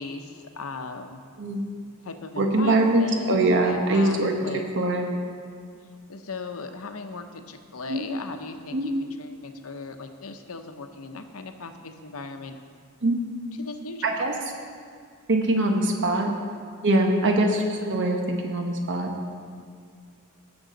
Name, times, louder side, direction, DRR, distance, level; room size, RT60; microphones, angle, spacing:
voice 1, 0.0-1.2 2.0-4.6 6.1-12.6 13.6-14.1, left 3 dB, 70° left, 7 dB, 0.8 m, -37 dB
voice 2, 2.4-4.3 4.8-5.1 7.9-8.0 8.7-8.9 13.0-13.2 14.0-14.3 15.3-16.3 16.8-19.1, right 2 dB, 55° right, 2 dB, 1.2 m, -22 dB
18.0 x 7.0 x 4.0 m, 2.1 s
head